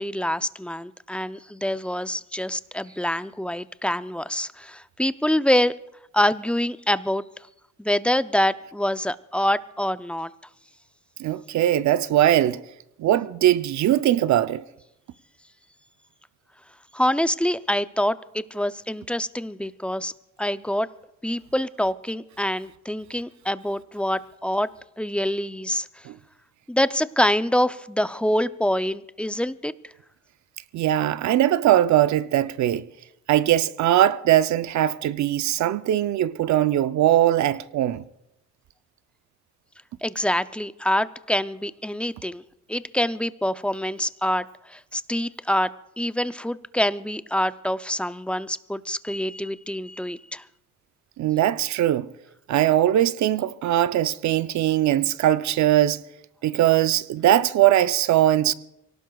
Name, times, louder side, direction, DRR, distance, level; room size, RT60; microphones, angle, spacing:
voice 1, 0.0-5.7 6.1-7.2 7.8-10.3 16.9-20.1 20.4-20.9 21.2-24.7 25.0-26.1 26.7-29.7 40.0-42.4 42.7-45.7 46.0-50.4, left 1 dB, 5° left, 0.5 m, -25 dB
voice 2, 11.2-12.6 13.0-14.6 26.1-26.2 30.7-32.9 33.3-38.0 51.2-52.1 52.5-56.0 56.4-58.5, right 12 dB, 70° right, 0.6 m, -20 dB
25.5 x 18.0 x 2.3 m
cardioid pair, 90°, 30 cm